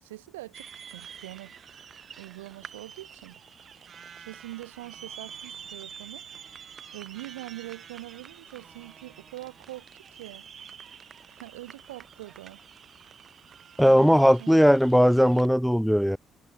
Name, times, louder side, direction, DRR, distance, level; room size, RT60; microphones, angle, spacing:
voice 1, 0.0-1.6 2.2-3.4 4.3-6.2 6.9-9.9 10.1-10.5 11.3-12.6 13.8-14.7, right 18 dB, 85° right, 7.7 m, -43 dB
sound 1, 0.5-15.5, right 7 dB, 50° right, 5.5 m, -47 dB
voice 2, 13.8-16.2, equal, ahead, 0.4 m, -19 dB
hypercardioid pair, 50°, 0 cm